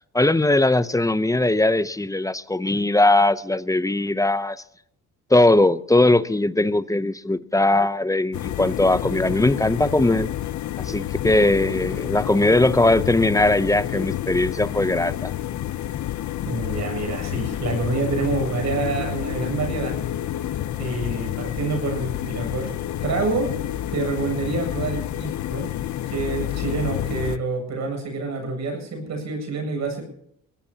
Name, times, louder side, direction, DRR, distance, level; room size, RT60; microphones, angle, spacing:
voice 1, 0.1-4.6 5.3-10.3 10.8-15.3, left 2 dB, 10° left, 0.7 m, -20 dB
sound 1, 8.3-27.4, left 12 dB, 70° left, 0.8 m, -29 dB
voice 2, 16.5-20.0 20.8-22.7 23.0-23.5 23.9-25.7 26.1-30.0, right 3 dB, 65° right, 7.7 m, -27 dB
22.5 x 17.5 x 2.9 m
cardioid pair, 90°, 30 cm